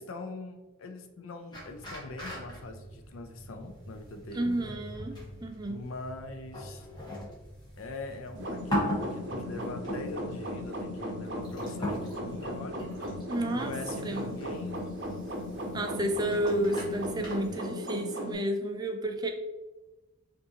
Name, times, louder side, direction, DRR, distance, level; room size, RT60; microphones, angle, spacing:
voice 1, 0.0-4.8 5.6-6.9 7.8-12.8 13.5-14.8 15.5-15.6, left 2 dB, 70° left, 6 dB, 0.5 m, -42 dB
sound 1, 1.5-17.6, equal, 20° left, 1.0 m, -40 dB
voice 2, 4.3-5.8 13.3-13.7 14.0-14.3 15.7-19.3, right 1 dB, 20° right, 4 dB, 0.4 m, -31 dB
sound 2, 8.3-18.3, equal, 55° right, 0.6 m, -37 dB
5.3 x 2.6 x 2.8 m, 1.1 s
head